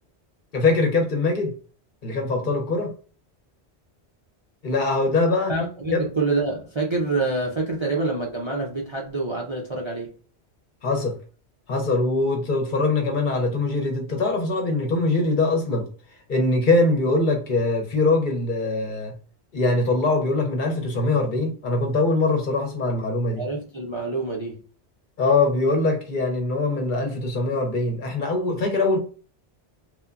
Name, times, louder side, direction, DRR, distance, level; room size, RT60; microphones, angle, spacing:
voice 1, 0.5-1.5 2.0-2.9 4.6-5.5 5.9-6.0 10.8-11.1 11.7-15.9 16.3-19.1 19.5-23.4 25.2-29.0, left 3 dB, 55° left, 0.7 m, -22 dB
voice 2, 5.5-10.1 23.4-24.6, right 3 dB, 40° right, 0.4 m, -26 dB
3.1 x 2.1 x 2.4 m
omnidirectional pair, 1.2 m